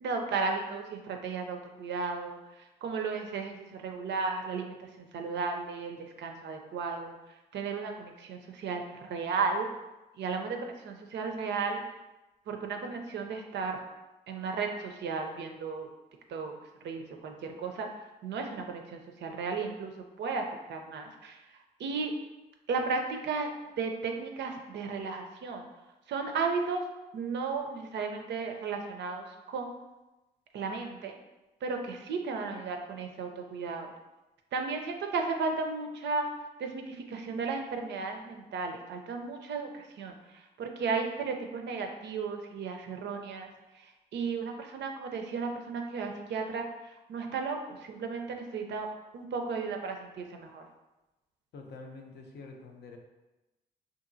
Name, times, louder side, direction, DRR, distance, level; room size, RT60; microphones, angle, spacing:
voice 1, 0.0-7.2 7.5-9.7 10.2-11.8 12.5-13.8 14.3-15.9 16.3-16.6 16.8-17.9 18.2-19.9 20.2-21.4 21.8-22.1 22.7-23.5 23.8-25.7 26.1-26.8 27.1-29.7 30.5-31.1 31.6-33.9 34.5-36.3 36.6-48.9 49.1-50.6, right 4 dB, 65° right, 3 dB, 0.4 m, -34 dB
voice 2, 51.5-53.0, left 3 dB, 65° left, 2 dB, 0.5 m, -46 dB
2.7 x 2.5 x 2.5 m, 1.0 s
supercardioid pair, 45°, 19 cm